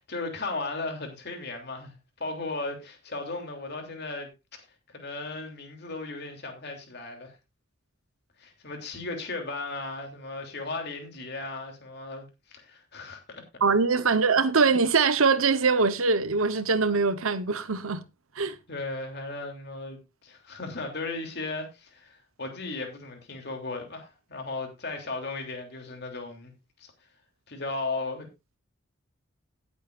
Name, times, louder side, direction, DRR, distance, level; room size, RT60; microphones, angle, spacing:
voice 1, 0.0-4.3 4.9-7.3 8.4-13.2 14.0-14.2 18.7-26.5 26.8-26.9 27.5-28.3, left 3 dB, 50° left, 3.1 m, -36 dB
voice 2, 13.6-18.0 18.4-18.6, right 4 dB, 85° right, 1.1 m, -23 dB
17.5 x 8.3 x 2.6 m
head